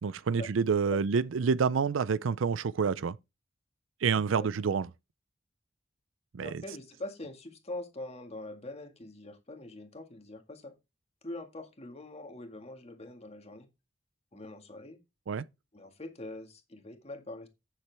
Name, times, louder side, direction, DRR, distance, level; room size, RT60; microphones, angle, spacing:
voice 1, 0.0-3.2 4.0-4.9 6.3-6.6 15.3-15.4, right 5 dB, 85° right, 0.5 m, -28 dB
voice 2, 6.4-10.7 11.2-13.7 14.3-15.0 15.7-17.5, left 2 dB, 35° left, 1.9 m, -43 dB
9.8 x 7.2 x 3.4 m
head